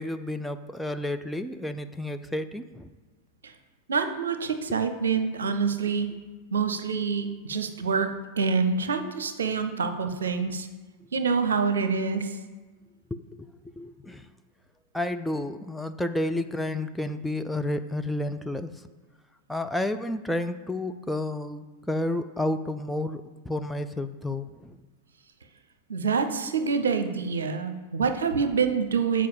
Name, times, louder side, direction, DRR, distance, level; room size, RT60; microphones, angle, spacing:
voice 1, 0.0-2.9 13.1-13.5 13.8-14.3 14.9-18.8 19.5-24.8, left 1 dB, 5° left, 7 dB, 0.4 m, -31 dB
voice 2, 3.9-6.2 6.5-10.7 11.1-12.3 25.9-29.3, right 5 dB, 70° right, 8 dB, 0.8 m, -26 dB
7.6 x 4.9 x 7.2 m, 1.3 s
figure-of-eight pair, 90°, 0 cm